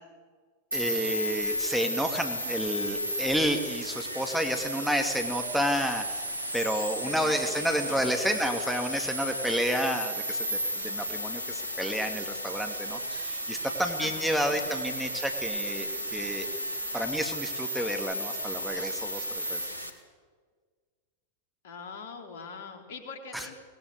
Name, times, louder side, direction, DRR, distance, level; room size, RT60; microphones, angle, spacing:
voice 1, 0.7-6.2 6.5-16.5 16.9-19.7 23.3-23.5, equal, ahead, 4 dB, 2.5 m, -30 dB
sound 1, 0.7-19.9, equal, 85° right, 2.7 m, -34 dB
voice 2, 7.0-8.0 14.0-14.7 21.6-23.5, left 5 dB, 55° left, 5 dB, 3.9 m, -43 dB
24.5 x 20.0 x 8.2 m, 1.6 s
figure-of-eight pair, 90°, 0 cm